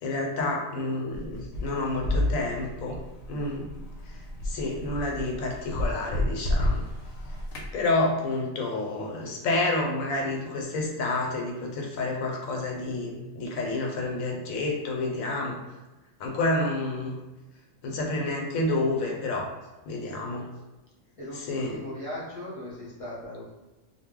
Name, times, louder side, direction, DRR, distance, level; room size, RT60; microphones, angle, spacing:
voice 1, 0.0-3.0 3.3-3.7 4.1-4.2 4.4-6.8 7.7-15.6 16.2-17.1 17.8-19.5 19.9-20.5 21.3-21.8, left 2 dB, 90° left, 0 dB, 1.0 m, -29 dB
sound 1, 1.1-7.7, left 1 dB, 70° left, 0.9 m, -31 dB
voice 2, 21.2-23.5, left 1 dB, 35° left, -6 dB, 0.6 m, -38 dB
2.3 x 2.0 x 3.6 m, 1.1 s
omnidirectional pair, 1.4 m